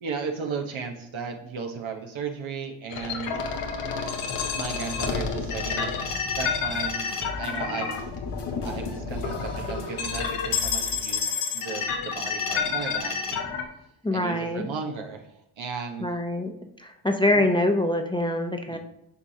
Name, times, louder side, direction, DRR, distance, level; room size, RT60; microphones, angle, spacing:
voice 1, 0.0-3.4 4.5-5.9 6.4-7.1 7.4-8.1 8.6-13.5 14.1-16.1 17.3-17.4 18.7-18.8, right 5 dB, 65° right, 3 dB, 1.2 m, -35 dB
sound 1, 2.9-13.6, left 5 dB, 90° left, 0.9 m, -29 dB
sound 2, 4.6-11.0, left 3 dB, 55° left, 1.2 m, -40 dB
voice 2, 14.0-14.7 16.0-16.5 16.8-18.8, left 1 dB, 10° left, 4 dB, 0.7 m, -24 dB
8.4 x 4.9 x 2.8 m, 0.77 s
supercardioid pair, 45°, 50 cm